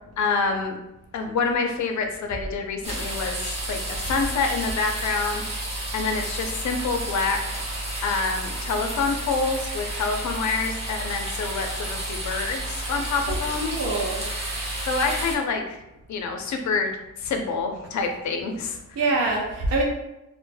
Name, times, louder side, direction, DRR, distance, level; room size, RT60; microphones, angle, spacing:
voice 1, 0.2-0.8 1.1-5.5 5.9-7.6 8.0-13.8 14.9-15.8 16.1-16.9 17.2-19.0, left 4 dB, 65° left, 4 dB, 0.5 m, -27 dB
sound 1, 2.8-15.3, right 1 dB, 20° right, 0.7 m, -31 dB
voice 2, 13.6-14.3 19.0-19.8, right 3 dB, 55° right, -1 dB, 0.4 m, -24 dB
2.1 x 2.0 x 3.1 m, 0.91 s
wide cardioid pair, 125°, 31 cm